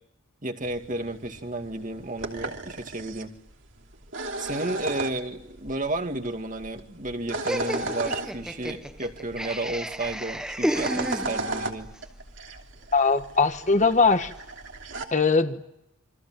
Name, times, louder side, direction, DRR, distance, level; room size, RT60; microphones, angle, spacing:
voice 1, 0.4-3.3 4.4-11.9, right 2 dB, 40° right, 6 dB, 2.3 m, -32 dB
sound 1, 0.6-15.0, right 2 dB, 60° right, 3.1 m, -36 dB
Laughter, 7.5-11.7, equal, 5° right, 1.2 m, -31 dB
voice 2, 12.9-14.3 15.1-15.6, left 4 dB, 35° left, 9 dB, 1.5 m, -21 dB
28.5 x 24.5 x 7.7 m, 0.86 s
head